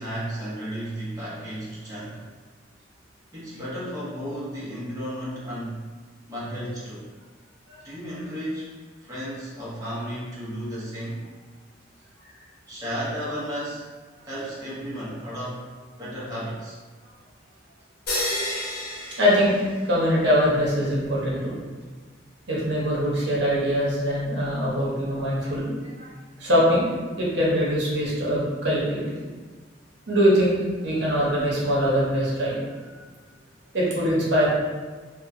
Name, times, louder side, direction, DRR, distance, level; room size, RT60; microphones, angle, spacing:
voice 1, 0.0-2.2 3.3-5.9 6.3-7.1 7.8-11.2 12.7-13.9 14.3-15.7 16.0-16.8, equal, 20° right, -9 dB, 0.7 m, -33 dB
sound 1, 18.1-20.2, left 1 dB, 60° left, 0.8 m, -30 dB
voice 2, 19.2-19.5 19.8-21.6 22.5-25.7 26.0-26.1 26.4-26.9 27.2-29.1 30.1-32.6 33.7-34.5, equal, 65° right, -6 dB, 0.8 m, -22 dB
2.9 x 2.2 x 2.5 m, 1.4 s
head